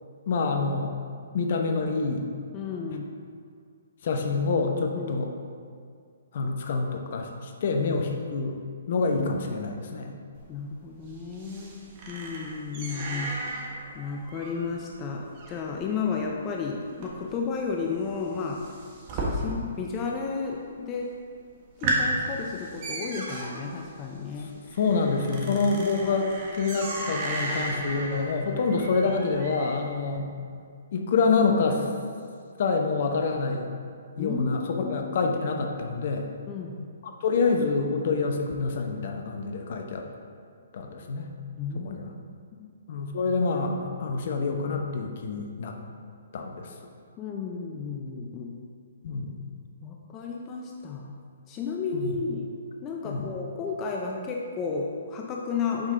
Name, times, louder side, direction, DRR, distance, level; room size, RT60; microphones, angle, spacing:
voice 1, 0.3-0.9 1.3-2.2 4.0-5.3 6.3-8.6 8.9-10.1 24.8-30.3 30.9-31.9 32.6-33.7 34.2-36.3 37.0-40.1 40.7-41.3 41.8-42.1 42.9-45.8 46.3-46.7 49.0-49.4 51.9-52.1 53.0-53.2, left 4 dB, 50° left, 3 dB, 0.8 m, -27 dB
voice 2, 2.5-3.1 4.9-5.2 10.5-13.5 13.9-18.6 19.1-21.1 21.8-24.6 34.2-35.3 36.5-36.9 41.6-42.0 42.6-42.7 47.2-48.6 49.8-51.1 51.5-52.5 52.8-55.9, left 5 dB, 25° left, 0 dB, 0.6 m, -33 dB
sound 1, 10.4-19.9 20.2-20.8 21.2-21.3 21.6-29.9, right 1 dB, 35° right, 1.3 m, -35 dB
8.1 x 5.4 x 3.8 m, 2.2 s
figure-of-eight pair, 130°, 0 cm